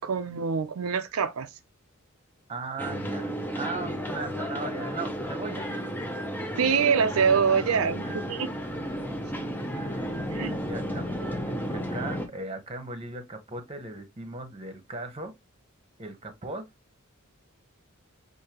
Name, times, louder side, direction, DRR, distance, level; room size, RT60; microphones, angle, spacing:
voice 1, 0.0-1.5 6.6-8.5 10.3-10.5, right 6 dB, 90° right, 0.5 m, -25 dB
voice 2, 2.5-5.7 7.2-7.3 8.0-8.2 9.7-15.3 16.0-16.7, right 3 dB, 25° right, 1.0 m, -38 dB
sound 1, 2.8-12.3, equal, 10° left, 0.7 m, -33 dB
6.5 x 2.7 x 2.9 m
head